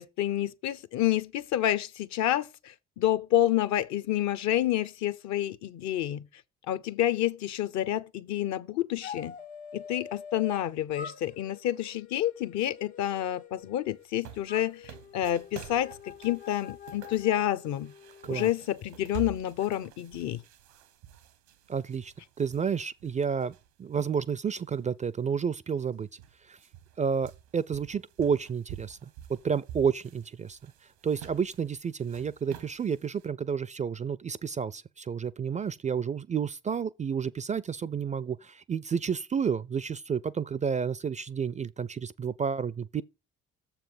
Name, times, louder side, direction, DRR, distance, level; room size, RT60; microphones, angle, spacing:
voice 1, 0.0-6.3 6.7-9.3 9.7-17.9 18.3-20.4, left 12 dB, 60° left, 0.7 m, -29 dB
sound 1, 9.0-10.7 10.9-14.1 14.4-18.5, left 7 dB, 90° left, 1.3 m, -45 dB
sound 2, 14.0-24.1 24.5-24.6 25.5-25.6 25.8-33.3, right 10 dB, 80° right, 1.1 m, -48 dB
voice 2, 21.7-26.1 26.5-26.6 27.0-30.6 31.0-43.0, right 6 dB, 25° right, 0.4 m, -31 dB
7.0 x 5.8 x 5.0 m
hypercardioid pair, 50°, 32 cm